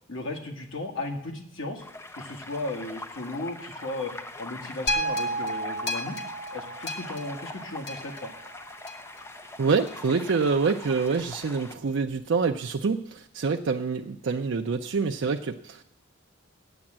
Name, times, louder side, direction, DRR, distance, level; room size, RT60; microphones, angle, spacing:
voice 1, 0.1-1.9 2.2-4.1 4.4-6.2 6.5-8.3, left 2 dB, 75° left, 1 dB, 1.8 m, -35 dB
sound 1, 1.8-11.8, left 2 dB, 15° left, 0.5 m, -42 dB
sound 2, 4.9-9.2 9.9-10.0, equal, 55° left, 1.3 m, -32 dB
voice 2, 9.6-15.9, right 4 dB, 65° right, 4 dB, 0.5 m, -26 dB
8.9 x 8.7 x 7.3 m, 0.74 s
head